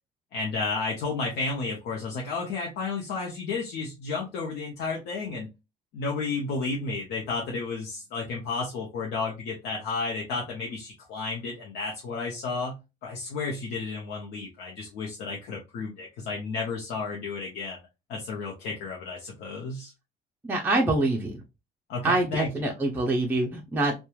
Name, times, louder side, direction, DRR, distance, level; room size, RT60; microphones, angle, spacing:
voice 1, 0.3-5.5 5.9-17.8 18.1-19.9 21.9-22.5, left 4 dB, 80° left, -1 dB, 0.7 m, -32 dB
voice 2, 20.4-21.4 22.0-23.9, right 2 dB, 10° right, 0 dB, 0.5 m, -25 dB
2.9 x 2.2 x 2.2 m, 0.25 s
cardioid pair, 110°, 17 cm